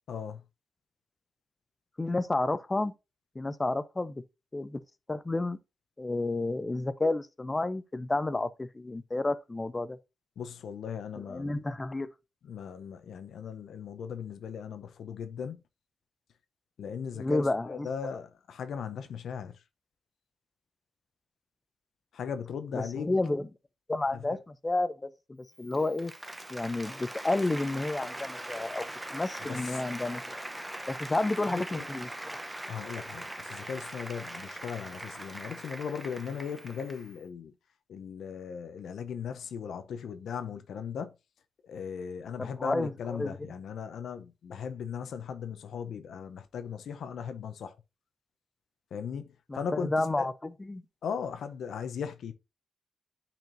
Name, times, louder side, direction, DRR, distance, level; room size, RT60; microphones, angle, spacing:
voice 1, 0.1-0.4 10.4-11.6 12.4-15.6 16.8-19.5 22.1-23.1 24.1-24.4 29.4-29.6 31.5-31.8 32.7-37.5 37.9-41.1 41.6-47.7 48.9-49.9 50.2-50.3 51.0-52.3, left 7 dB, 80° left, 0.6 m, -38 dB
voice 2, 2.0-2.9 3.4-4.2 4.5-4.8 5.1-5.6 6.0-10.0 11.2-12.1 17.1-17.9 22.7-23.5 23.9-26.1 26.5-30.4 30.9-32.1 42.4-43.5 49.5-50.8, left 2 dB, 25° left, 0.5 m, -31 dB
Applause, 25.6-37.2, right 1 dB, 10° right, 0.7 m, -41 dB
9.1 x 4.3 x 2.6 m
cardioid pair, 65°, 0 cm